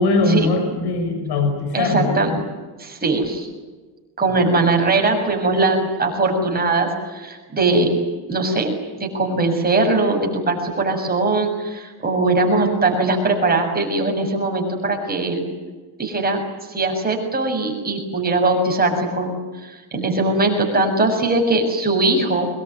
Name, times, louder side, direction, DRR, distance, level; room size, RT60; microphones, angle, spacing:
voice 1, 0.0-2.4 4.3-4.5, left 3 dB, 55° left, 6 dB, 5.2 m, -21 dB
voice 2, 1.7-2.4 2.8-3.5 4.2-7.9 8.3-8.7 9.0-15.4 16.0-16.4 16.7-22.5, right 2 dB, 20° right, 2 dB, 7.0 m, -20 dB
24.0 x 21.5 x 9.6 m, 1.3 s
cardioid pair, 140°, 46 cm